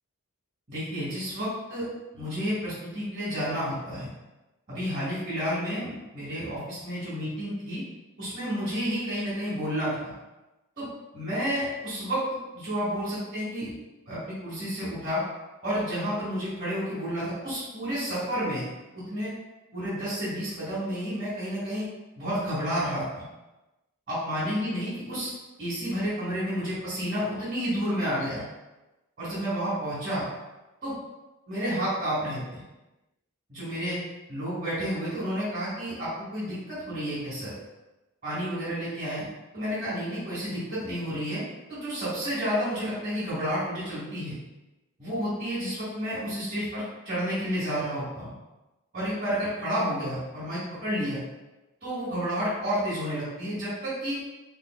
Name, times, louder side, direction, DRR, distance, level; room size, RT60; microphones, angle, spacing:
voice 1, 0.7-1.9 2.1-4.1 4.7-7.8 8.2-10.1 10.8-10.9 11.1-12.2 12.5-13.7 14.0-15.2 15.6-18.6 18.9-19.3 19.7-21.9 22.2-23.2 24.1-25.3 25.6-28.4 29.2-30.2 30.8-30.9 31.5-32.6 33.5-34.0 34.3-37.5 38.2-39.2 39.5-41.4 41.7-44.4 45.0-48.3 48.9-51.2 51.8-54.2, equal, 40° right, -10 dB, 1.4 m, -30 dB
3.7 x 3.3 x 2.3 m, 1.1 s
head